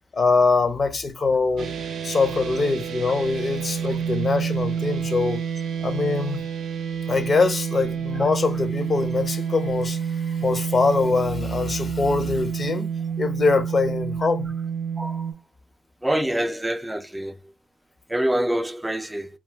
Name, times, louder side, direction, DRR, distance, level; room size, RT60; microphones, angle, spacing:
voice 1, 0.1-1.7 2.0-5.4 5.8-6.4 7.1-12.9 13.2-14.5, left 4 dB, 45° left, 0.6 m, -23 dB
sound 1, 1.6-15.3, right 7 dB, 80° right, 0.6 m, -29 dB
voice 2, 16.0-17.3 18.1-19.3, right 1 dB, 10° right, 0.4 m, -25 dB
2.3 x 2.3 x 3.2 m
cardioid pair, 85°, 0 cm